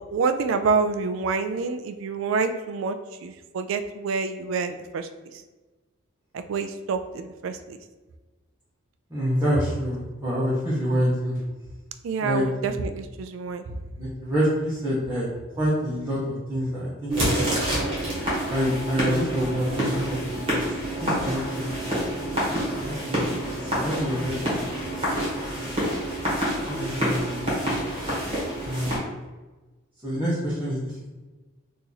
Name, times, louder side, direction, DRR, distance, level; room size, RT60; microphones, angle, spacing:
voice 1, 0.0-3.0 3.2-5.1 6.3-7.8 12.0-13.8, right 4 dB, 75° right, 8 dB, 0.3 m, -27 dB
voice 2, 9.1-11.4 12.2-12.8 14.0-15.3 15.6-17.6 18.5-20.6 21.0-22.0 22.8-23.3 23.6-25.7 26.7-27.9 28.6-29.0 30.0-30.9, equal, 10° right, -10 dB, 0.7 m, -27 dB
sound 1, 17.1-29.0, equal, 25° right, 1.1 m, -27 dB
2.9 x 2.5 x 3.9 m, 1.2 s
head